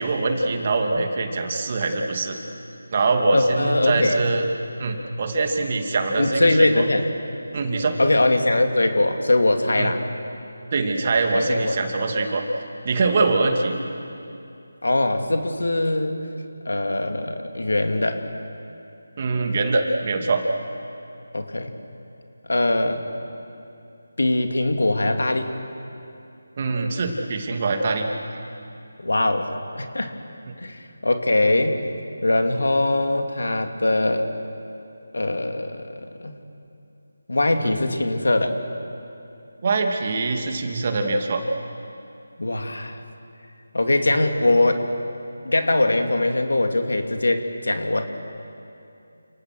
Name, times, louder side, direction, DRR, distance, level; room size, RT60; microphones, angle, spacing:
voice 1, 0.0-2.4 2.9-4.5 4.8-6.8 7.5-8.0 9.8-9.9 10.7-12.4 12.8-13.8 19.2-20.4 26.6-28.1 37.6-37.7 39.6-41.4, right 3 dB, 35° right, 3 dB, 2.7 m, -23 dB
voice 2, 3.3-4.2 6.2-7.0 8.0-10.0 11.3-11.8 14.8-16.2 16.6-18.3 21.3-21.7 22.5-23.1 24.2-25.5 29.0-30.1 30.6-31.8 32.2-34.3 35.1-36.4 37.3-38.5 42.4-43.0 43.7-44.8 45.4-48.0, left 2 dB, 70° left, 5 dB, 2.7 m, -21 dB
29.5 x 28.5 x 6.3 m, 2.6 s
figure-of-eight pair, 160°, 0 cm